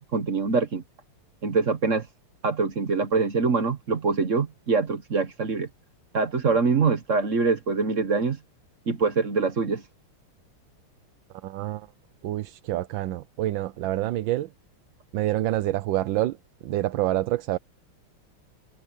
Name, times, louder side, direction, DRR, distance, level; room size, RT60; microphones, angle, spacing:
voice 1, 0.1-0.8 1.4-2.1 2.4-5.7 6.1-8.4 8.9-9.8, right 4 dB, 40° right, 1.3 m, -24 dB
voice 2, 11.4-11.9 12.2-14.5 15.1-16.4 16.6-17.6, right 14 dB, 70° right, 1.3 m, -27 dB
omnidirectional pair, 2.4 m